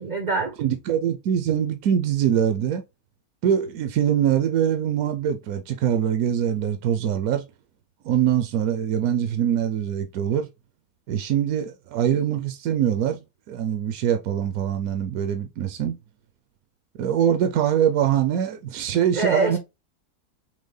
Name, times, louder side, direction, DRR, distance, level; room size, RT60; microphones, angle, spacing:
voice 1, 0.0-0.6 19.1-19.6, right 3 dB, 45° right, 0.6 m, -24 dB
voice 2, 0.6-2.8 3.4-7.5 8.0-10.5 11.1-13.2 13.5-16.0 17.0-19.6, right 9 dB, 70° right, 1.0 m, -23 dB
6.2 x 2.2 x 3.8 m
omnidirectional pair, 1.7 m